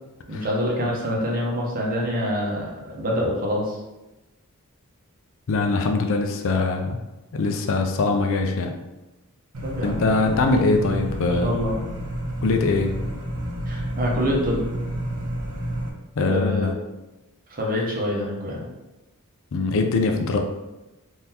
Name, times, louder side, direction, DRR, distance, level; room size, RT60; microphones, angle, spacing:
voice 1, 0.3-3.8 9.6-10.3 11.3-11.8 13.7-14.6 16.2-16.7 17.5-18.6, equal, 40° right, -2 dB, 0.8 m, -26 dB
voice 2, 5.5-7.0 7.3-8.7 9.8-11.5 12.4-12.9 16.1-16.7 19.5-20.4, left 3 dB, 60° left, 4 dB, 0.4 m, -22 dB
sound 1, 9.5-15.9, right 1 dB, 80° right, 0.8 m, -30 dB
3.7 x 2.7 x 2.8 m, 1.0 s
head